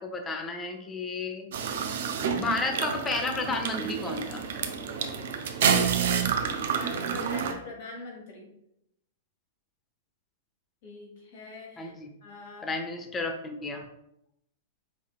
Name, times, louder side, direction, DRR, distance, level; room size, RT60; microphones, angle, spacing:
voice 1, 0.0-1.5 2.3-4.4 11.8-12.1 12.6-13.8, left 3 dB, 20° left, 3 dB, 0.6 m, -32 dB
sound 1, 1.5-7.5, right 7 dB, 65° right, 0.5 m, -28 dB
voice 2, 6.6-8.5 10.8-11.9 12.2-12.8, left 3 dB, 55° left, 0 dB, 1.5 m, -43 dB
5.2 x 2.8 x 2.4 m, 0.79 s
hypercardioid pair, 105°, 0 cm